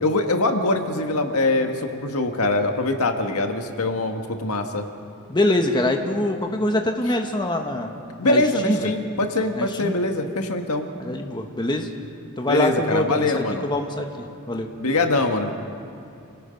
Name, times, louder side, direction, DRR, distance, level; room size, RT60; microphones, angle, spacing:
voice 1, 0.0-4.9 8.2-10.9 12.5-13.6 14.8-15.5, left 2 dB, 80° left, 5 dB, 1.6 m, -23 dB
voice 2, 5.3-7.9 8.2-8.9 9.6-10.0 11.0-11.9 12.4-14.1 14.5-14.7, left 1 dB, 20° left, 3 dB, 1.3 m, -24 dB
29.0 x 18.0 x 5.3 m, 2.6 s
head